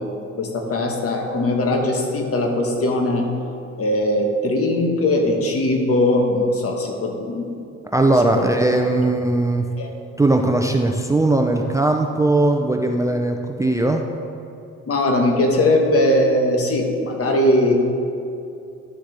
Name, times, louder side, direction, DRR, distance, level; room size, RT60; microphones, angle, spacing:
voice 1, 0.0-3.3 3.8-7.5 9.8-9.9 14.9-17.8, left 1 dB, 50° left, 2 dB, 1.3 m, -20 dB
voice 2, 7.9-9.7 10.2-14.0, right 2 dB, 10° right, 2 dB, 0.5 m, -19 dB
11.0 x 6.6 x 3.4 m, 2.6 s
cardioid pair, 90°, 30 cm